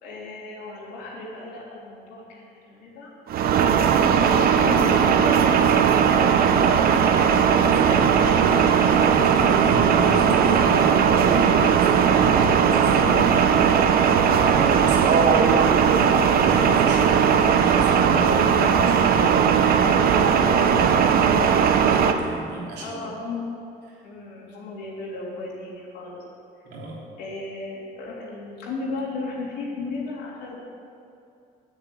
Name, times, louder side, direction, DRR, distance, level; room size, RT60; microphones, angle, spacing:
voice 1, 0.0-3.1 4.1-5.4 5.9-7.2 8.1-8.5 11.3-11.7 22.8-23.5 24.0-26.2 27.2-30.6, left 3 dB, 85° left, -5 dB, 3.2 m, -35 dB
sound 1, 3.3-22.1, right 7 dB, 60° right, 0.9 m, -18 dB
voice 2, 7.6-11.3 11.6-23.1 23.9-24.1 26.6-27.0, right 1 dB, 80° right, -4 dB, 3.4 m, -36 dB
9.5 x 7.8 x 8.5 m, 2.6 s
cardioid pair, 110°, 17 cm